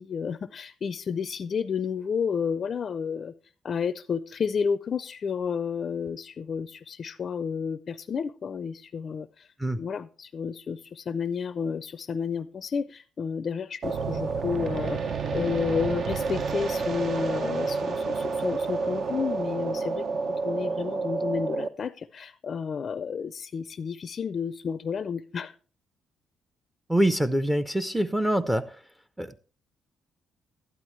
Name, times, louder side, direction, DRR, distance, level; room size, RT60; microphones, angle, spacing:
voice 1, 0.0-3.3 3.6-15.0 15.3-20.0 20.4-25.6, left 6 dB, 50° left, 13 dB, 0.4 m, -31 dB
sound 1, 13.8-21.7, right 4 dB, 55° right, 0.8 m, -29 dB
voice 2, 26.9-28.6 29.2-29.4, right 1 dB, 10° right, 9 dB, 0.6 m, -24 dB
12.0 x 11.0 x 3.1 m, 0.40 s
cardioid pair, 90°, 0 cm